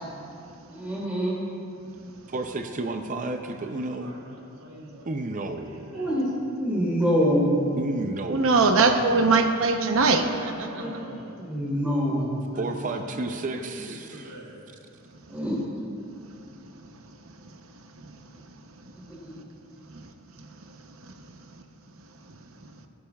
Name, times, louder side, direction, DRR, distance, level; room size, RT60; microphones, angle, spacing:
voice 1, 0.7-1.4 5.9-6.3 6.5-7.6 10.8-10.9 11.4-12.3 15.3-15.6 19.1-19.3, equal, 5° right, -6 dB, 2.5 m, -25 dB
voice 2, 2.3-4.1 5.0-5.8 7.8-8.6 12.6-14.3, right 2 dB, 35° right, 6 dB, 0.5 m, -32 dB
voice 3, 3.6-5.0 5.6-6.2 7.0-7.1 9.9-11.4 12.5-14.6, right 1 dB, 85° right, -4 dB, 2.3 m, -44 dB
voice 4, 8.3-10.7, right 3 dB, 65° right, 5 dB, 0.8 m, -21 dB
19.5 x 11.5 x 2.4 m, 2.7 s
head